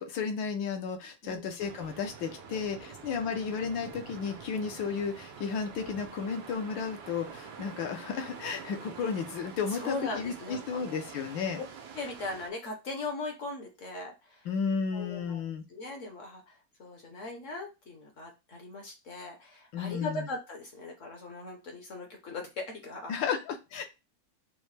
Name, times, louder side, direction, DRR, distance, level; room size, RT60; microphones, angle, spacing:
voice 1, 0.0-11.6 14.5-15.6 19.7-20.3 23.1-23.8, left 6 dB, 75° left, 5 dB, 1.5 m, -33 dB
voice 2, 1.2-1.5 2.9-3.0 9.7-11.1 11.9-14.5 14.9-15.4 15.7-23.3, left 2 dB, 55° left, 2 dB, 0.9 m, -39 dB
sound 1, 1.6-12.5, right 6 dB, 85° right, 1.5 m, -46 dB
5.4 x 2.1 x 3.2 m, 0.26 s
omnidirectional pair, 2.1 m